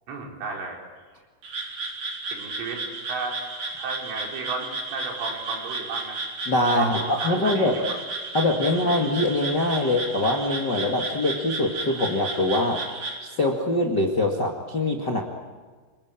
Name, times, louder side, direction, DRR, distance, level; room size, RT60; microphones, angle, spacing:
voice 1, 0.1-0.8 2.3-3.4 3.8-6.2 6.8-8.0 8.7-8.8, right 4 dB, 70° right, 0 dB, 7.3 m, -34 dB
Frog, 1.4-13.2, right 3 dB, 40° right, 5.0 m, -33 dB
voice 2, 6.5-7.8 8.3-12.8 13.2-15.2, left 1 dB, 75° left, 0 dB, 0.9 m, -23 dB
29.5 x 21.5 x 9.0 m, 1.4 s
omnidirectional pair, 5.8 m